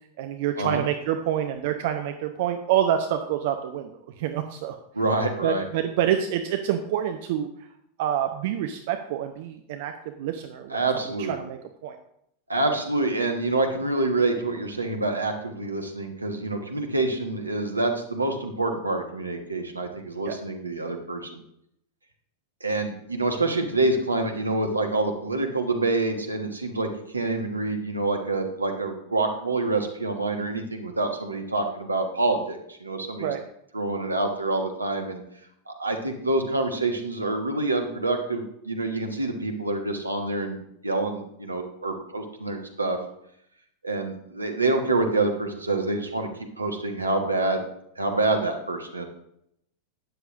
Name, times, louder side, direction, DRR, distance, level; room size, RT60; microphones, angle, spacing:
voice 1, 0.2-3.9 4.2-4.8 5.4-7.5 8.0-9.9 10.2-10.8 11.3-12.0 20.3-20.4 33.2-33.4, right 10 dB, 50° right, 6 dB, 0.7 m, -27 dB
voice 2, 4.9-5.6 10.7-11.3 12.5-21.4 22.6-33.3 33.7-35.2 35.7-43.0 43.8-46.3 46.6-47.6 48.0-49.0, right 2 dB, 80° right, 4 dB, 1.4 m, -27 dB
12.5 x 9.0 x 2.6 m, 0.74 s
figure-of-eight pair, 90°, 0 cm